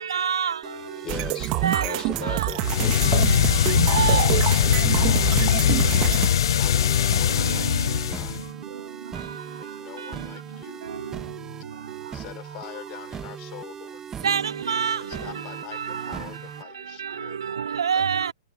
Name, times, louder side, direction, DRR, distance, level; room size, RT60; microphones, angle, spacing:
voice 1, 0.0-1.0 1.6-2.5 3.5-3.6 3.9-4.3 7.3-7.8 8.7-9.8 10.0-10.1 10.8-12.0 14.2-15.3 15.7-16.0 17.0-18.3, right 7 dB, 85° right, 0.4 m, -28 dB
sound 1, 0.6-16.6, right 8 dB, 20° right, 1.5 m, -39 dB
voice 2, 1.0-3.2, left 10 dB, 25° left, 4.7 m, -37 dB
sound 2, 1.1-6.3, right 24 dB, 40° right, 1.5 m, -26 dB
sound 3, 2.6-8.5, left 9 dB, 70° left, 0.6 m, -21 dB
voice 3, 4.5-5.5 6.6-8.4 9.6-10.8 12.1-14.0 15.0-17.4 17.9-18.3, left 27 dB, 40° left, 3.5 m, -44 dB
hypercardioid pair, 125°, 3 cm